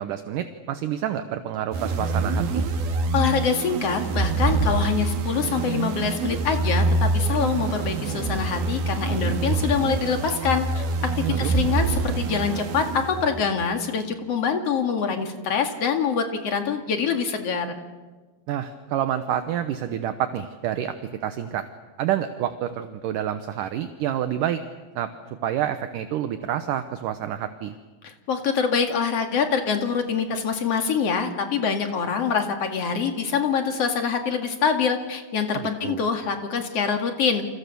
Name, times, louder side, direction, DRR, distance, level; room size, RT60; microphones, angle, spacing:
voice 1, 0.0-2.7 11.3-11.6 18.5-20.9 21.2-21.7 22.0-24.6 25.0-25.1 25.4-27.7 35.5-36.0, right 10 dB, 70° right, 9 dB, 2.4 m, -28 dB
sound 1, 1.7-13.5, right 3 dB, 85° right, 3.7 m, -25 dB
voice 2, 3.1-17.8 28.0-37.4, left 6 dB, 45° left, 5 dB, 2.8 m, -25 dB
29.5 x 27.5 x 6.9 m, 1.3 s
omnidirectional pair, 4.2 m